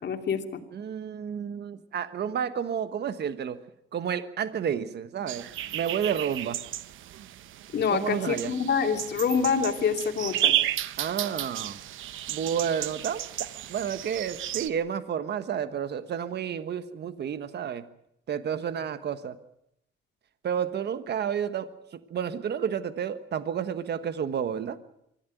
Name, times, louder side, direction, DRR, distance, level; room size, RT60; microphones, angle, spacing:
voice 1, 0.0-0.6 7.7-10.5, left 6 dB, 60° left, 4 dB, 2.8 m, -26 dB
voice 2, 0.7-3.6 3.9-5.4 5.7-6.6 7.9-8.5 11.0-11.8 12.3-17.8 18.3-19.4 20.4-24.8, right 8 dB, 60° right, 11 dB, 1.3 m, -31 dB
sound 1, 5.3-14.7, right 13 dB, 80° right, 1.0 m, -33 dB
24.0 x 15.0 x 9.2 m, 0.78 s
cardioid pair, 90°, 20 cm